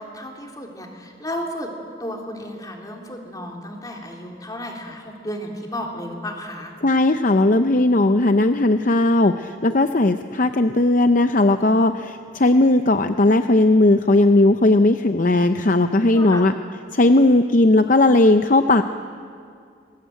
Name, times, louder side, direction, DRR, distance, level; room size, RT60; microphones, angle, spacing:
voice 1, 0.0-1.7 2.0-6.7 16.1-16.4, left 1 dB, 20° left, 1 dB, 3.2 m, -33 dB
voice 2, 6.8-16.5 16.9-18.8, left 2 dB, 45° left, 8 dB, 0.7 m, -17 dB
26.0 x 21.0 x 9.2 m, 2.3 s
head